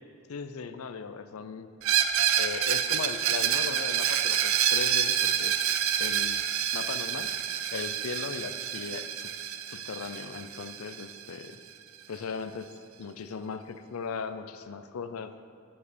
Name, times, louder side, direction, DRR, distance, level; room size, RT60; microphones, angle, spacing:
voice 1, 0.3-1.7 2.4-5.5 6.0-6.4 6.7-7.3 7.7-9.3 9.7-11.6 12.1-12.7 13.0-15.5, left 5 dB, 90° left, 10 dB, 0.5 m, -38 dB
Screech, 1.8-11.5, right 9 dB, 80° right, 0.5 m, -28 dB
7.5 x 6.8 x 6.7 m, 2.3 s
head